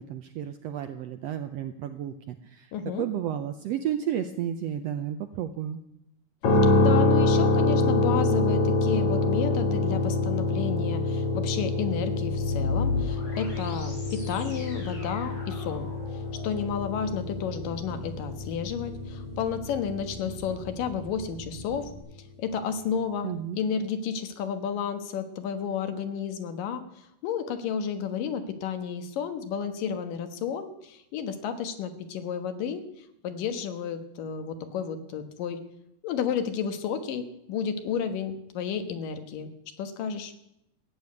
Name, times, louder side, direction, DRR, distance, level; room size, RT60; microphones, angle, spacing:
voice 1, 0.0-2.7 3.0-5.8 23.2-23.6, right 10 dB, 80° right, 8 dB, 1.5 m, -32 dB
voice 2, 2.7-3.1 6.8-21.9 22.4-35.6 36.0-39.5 39.8-40.3, left 7 dB, 85° left, 8 dB, 3.0 m, -32 dB
sound 1, 6.4-20.4, left 2 dB, 55° left, 2.2 m, -26 dB
sound 2, 12.0-22.0, left 3 dB, 70° left, 6.1 m, -37 dB
15.0 x 8.8 x 9.4 m, 0.83 s
omnidirectional pair, 3.7 m